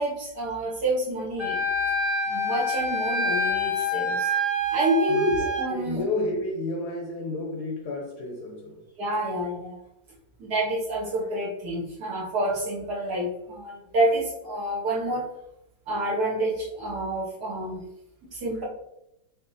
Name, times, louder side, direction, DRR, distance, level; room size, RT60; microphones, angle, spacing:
voice 1, 0.0-1.6 2.3-4.3 4.7-6.0 9.0-9.8 10.4-15.3 15.9-17.8 18.3-18.6, right 1 dB, 55° right, -6 dB, 1.8 m, -28 dB
Wind instrument woodwind instrument, 1.4-5.7, equal, 35° right, 1.6 m, -26 dB
voice 2, 5.7-8.8, left 2 dB, 65° left, 0 dB, 1.2 m, -31 dB
5.7 x 3.2 x 2.8 m, 0.84 s
omnidirectional pair, 2.3 m